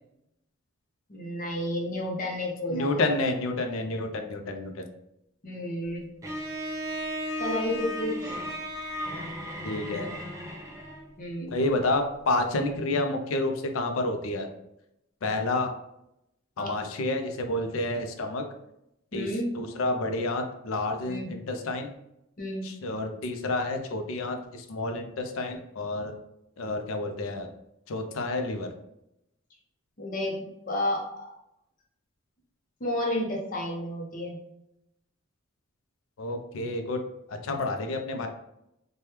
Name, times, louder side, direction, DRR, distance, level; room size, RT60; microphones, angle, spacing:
voice 1, 1.1-3.0 5.4-6.1 7.4-8.4 11.2-11.5 16.6-16.8 19.1-19.5 21.1-21.3 22.4-22.7 30.0-31.4 32.8-34.4, left 1 dB, 40° left, -1 dB, 0.7 m, -31 dB
voice 2, 2.7-4.8 9.6-10.1 11.5-14.5 15.2-15.7 16.6-18.4 19.1-19.3 19.5-21.9 22.6-26.1 26.6-27.5 27.9-28.7 36.2-37.0 37.3-38.3, left 2 dB, 80° left, 5 dB, 0.4 m, -29 dB
Bowed string instrument, 6.2-11.1, equal, 15° right, 0.4 m, -35 dB
3.2 x 2.2 x 2.9 m, 0.83 s
head